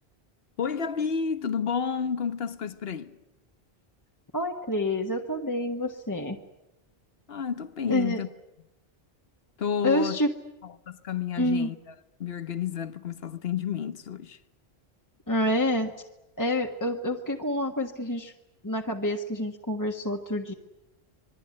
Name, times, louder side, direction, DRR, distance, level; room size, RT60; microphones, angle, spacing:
voice 1, 0.6-3.2 7.3-8.3 9.6-10.2 10.6-11.9 12.2-14.4, left 7 dB, 65° left, 1.4 m, -31 dB
voice 2, 4.3-6.4 7.9-8.2 9.8-10.3 11.4-11.7 15.3-15.9 16.4-18.3 18.6-20.5, left 1 dB, 20° left, 1.5 m, -27 dB
26.5 x 21.0 x 9.7 m
omnidirectional pair, 1.1 m